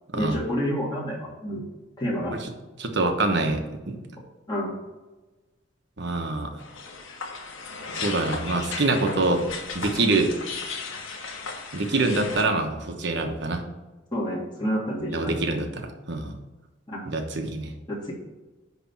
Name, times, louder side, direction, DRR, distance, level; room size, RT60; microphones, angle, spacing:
voice 1, 0.1-1.6 2.0-2.4 4.5-4.8 14.1-15.4 16.9-17.1 17.9-18.1, equal, 20° left, -5 dB, 2.0 m, -29 dB
voice 2, 2.8-4.0 6.0-6.5 8.0-9.4 9.7-10.3 11.7-13.6 15.1-16.4 17.1-17.7, right 2 dB, 60° right, 5 dB, 1.2 m, -25 dB
sound 1, 6.6-12.4, left 4 dB, 90° left, 1.3 m, -35 dB
10.0 x 3.4 x 7.2 m, 1.2 s
head